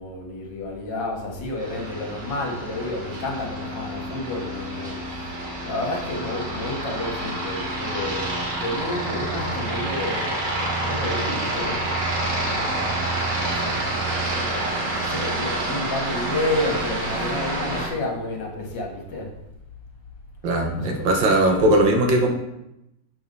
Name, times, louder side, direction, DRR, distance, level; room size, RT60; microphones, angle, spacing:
voice 1, 0.0-5.0 5.6-10.3 10.8-19.3 20.7-21.7, left 2 dB, 70° left, 0 dB, 2.1 m, -31 dB
Aircraft, 1.6-17.9, right 2 dB, 70° right, 2.3 m, -28 dB
voice 2, 20.4-22.3, right 1 dB, 90° right, 3 dB, 1.8 m, -19 dB
7.1 x 4.5 x 5.3 m, 0.87 s
omnidirectional pair, 2.0 m